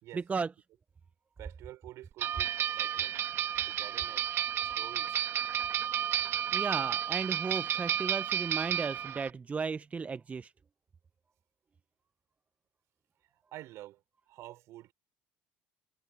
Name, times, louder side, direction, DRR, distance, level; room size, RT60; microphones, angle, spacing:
voice 1, 0.1-0.5 6.5-10.5, right 5 dB, 25° right, 0.6 m, -35 dB
voice 2, 1.4-3.2 3.7-4.3 4.6-5.2 13.5-14.9, right 15 dB, 65° right, 5.5 m, -49 dB
sound 1, 2.2-9.3, right 10 dB, 50° right, 1.5 m, -32 dB
supercardioid pair, 85°, 5 cm